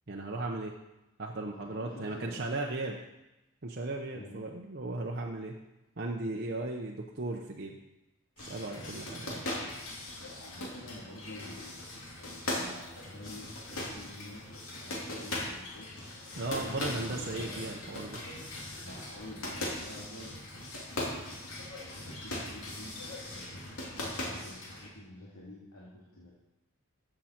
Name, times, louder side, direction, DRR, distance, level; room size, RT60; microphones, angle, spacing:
voice 1, 0.1-0.7 1.2-3.0 3.6-5.6 6.0-7.8 8.4-9.4 16.4-18.2, right 2 dB, 45° right, -1 dB, 0.8 m, -36 dB
voice 2, 1.6-2.4 4.1-4.3 10.3-15.9 16.6-17.8 18.8-20.3 21.3-21.4 21.8-23.8 24.2-26.3, left 1 dB, 90° left, -5 dB, 2.3 m, -49 dB
sound 1, 8.4-24.9, left 1 dB, 70° left, 2.6 m, -39 dB
14.0 x 7.7 x 4.4 m, 0.96 s
head